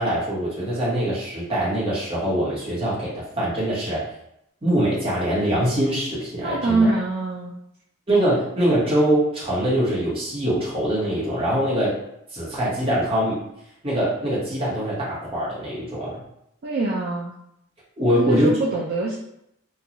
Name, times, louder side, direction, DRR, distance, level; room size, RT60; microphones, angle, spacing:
voice 1, 0.0-4.0 4.6-6.9 8.1-12.0 12.3-13.4 13.8-16.2 18.0-18.5, right 1 dB, 25° right, -7 dB, 1.0 m, -23 dB
voice 2, 6.4-7.5 16.6-17.3 18.1-19.2, right 2 dB, 45° right, -3 dB, 0.3 m, -23 dB
2.9 x 2.3 x 2.5 m, 0.77 s
head